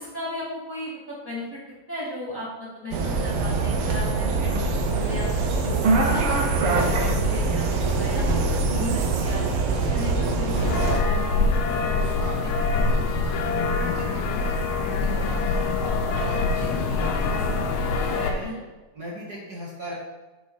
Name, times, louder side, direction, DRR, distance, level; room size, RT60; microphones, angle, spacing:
voice 1, 0.0-1.6 1.9-8.2 8.6-9.5 9.9-11.7 16.9-17.0 18.4-18.6, left 1 dB, 20° right, -8 dB, 1.6 m, -36 dB
sound 1, 2.9-11.0, right 3 dB, 80° right, 1.2 m, -23 dB
sound 2, 10.6-18.3, left 3 dB, 70° left, 2.0 m, -24 dB
voice 2, 12.1-13.0 13.6-15.7 16.1-17.5 18.0-18.5 18.9-19.9, right 1 dB, 40° right, -7 dB, 1.7 m, -38 dB
7.5 x 6.1 x 4.2 m, 1.1 s
omnidirectional pair, 3.7 m